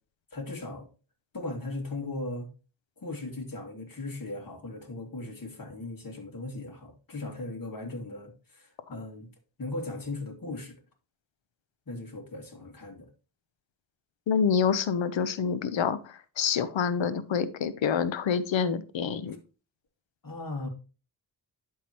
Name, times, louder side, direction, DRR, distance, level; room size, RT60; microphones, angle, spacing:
voice 1, 0.3-0.9 1.3-2.5 3.0-9.3 9.6-10.8 11.9-13.1 20.2-20.7, left 2 dB, 50° left, 2.5 m, -38 dB
voice 2, 14.3-19.4, left 7 dB, 75° left, 0.8 m, -27 dB
11.5 x 3.8 x 2.9 m
cardioid pair, 40°, 45 cm